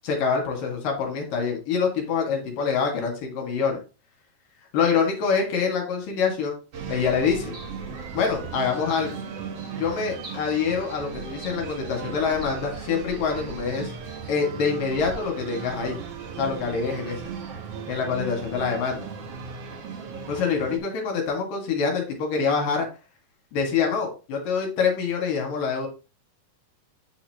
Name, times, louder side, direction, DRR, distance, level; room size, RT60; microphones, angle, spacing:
voice 1, 0.0-3.8 4.7-6.6 6.9-7.5 8.1-9.2 9.7-13.9 14.3-16.0 16.4-17.2 17.9-19.1 20.3-22.9 23.5-25.9, left 5 dB, 60° left, 1 dB, 3.3 m, -25 dB
sound 1, 6.7-20.8, right 6 dB, 70° right, 1.4 m, -36 dB
sound 2, 7.5-7.9 8.9-9.2 10.2-10.6 11.4-11.7 12.4-12.7 13.7-14.0, right 1 dB, 25° right, 3.2 m, -45 dB
9.7 x 5.7 x 2.9 m, 0.32 s
omnidirectional pair, 4.6 m